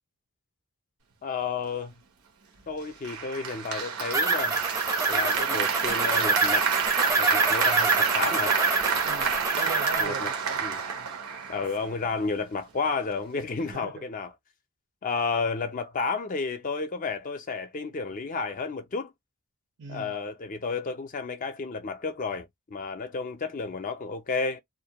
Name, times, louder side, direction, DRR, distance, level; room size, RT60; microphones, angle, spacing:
voice 1, 1.2-1.9 2.7-4.6 5.1-6.7 7.2-8.6 10.0-10.3 10.6-10.8 11.5-14.3 15.0-19.1 19.9-24.6, left 4 dB, 35° left, 0.4 m, -31 dB
Applause, 3.0-12.1, right 6 dB, 85° right, 0.9 m, -29 dB
sound 1, 4.1-10.0, right 3 dB, 15° right, 0.5 m, -26 dB
voice 2, 9.0-11.1 13.7-14.0 19.8-20.2, right 5 dB, 55° right, 0.6 m, -40 dB
2.5 x 2.2 x 2.8 m
head